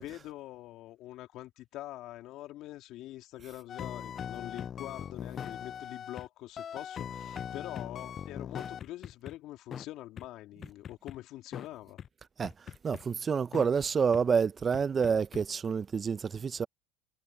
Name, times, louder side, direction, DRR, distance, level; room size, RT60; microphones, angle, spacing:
voice 1, 0.0-12.0, left 15 dB, 60° left, 3.0 m, -44 dB
sound 1, 3.7-6.3 6.6-9.3 9.7-9.8 10.2-10.3 10.6-11.2 11.5-11.7 12.0-12.1 12.4-13.0 13.5-13.7 14.1-14.2 14.7-15.4, left 8 dB, 40° left, 0.4 m, -40 dB
voice 2, 12.8-16.7, right 6 dB, 30° right, 0.6 m, -28 dB
supercardioid pair, 90°, 0 cm